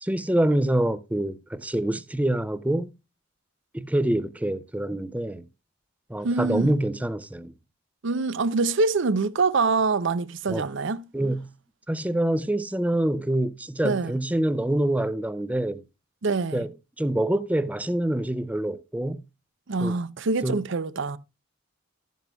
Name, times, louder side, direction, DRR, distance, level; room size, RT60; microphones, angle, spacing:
voice 1, 0.0-2.9 3.7-5.5 6.1-7.5 10.5-10.7 11.1-11.5 11.9-15.8 16.5-19.2 19.8-20.0 20.4-20.6, right 1 dB, 5° right, 0.5 m, -26 dB
voice 2, 6.2-6.7 8.0-11.0 13.8-14.1 16.2-16.6 19.7-21.2, right 3 dB, 65° right, 0.6 m, -25 dB
12.0 x 9.3 x 2.3 m
head